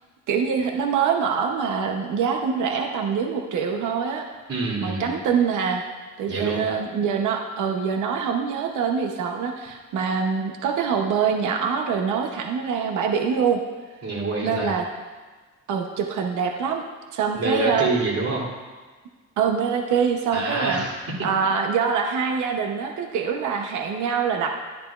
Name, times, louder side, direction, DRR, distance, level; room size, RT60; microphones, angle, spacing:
voice 1, 0.3-4.3 4.8-5.8 6.2-13.6 14.4-14.8 15.7-16.8 17.1-17.9 19.4-20.8 21.2-24.5, right 6 dB, 80° right, 3 dB, 0.8 m, -24 dB
voice 2, 4.5-5.1 6.3-6.6 14.0-14.7 17.3-18.4 20.3-21.0, right 3 dB, 50° right, -4 dB, 2.8 m, -26 dB
11.0 x 10.5 x 2.4 m, 1.4 s
cardioid pair, 90°, 30 cm